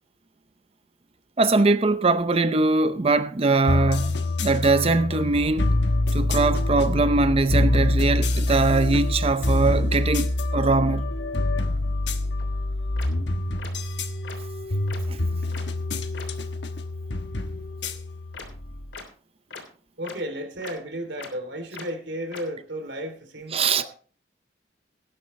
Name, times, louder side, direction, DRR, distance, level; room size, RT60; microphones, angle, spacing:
voice 1, 1.4-5.7 6.1-11.1 15.1-15.2 23.5-23.8, right 3 dB, 35° right, 0.6 m, -22 dB
sound 1, 3.7-18.9, left 2 dB, 70° left, 1.2 m, -25 dB
sound 2, 12.4-12.5 13.0-13.1 13.6-13.7 14.2-14.4 14.9-15.0 15.5-15.6 16.1-16.3 18.3-18.4 18.9-19.0 19.5-19.6 20.0-20.1 20.6-20.7 21.2-21.3 21.7-21.8 22.3-22.4, left 4 dB, 90° left, 3.3 m, -39 dB
voice 2, 20.0-23.8, right 1 dB, 80° right, 3.0 m, -33 dB
17.5 x 9.8 x 3.2 m
head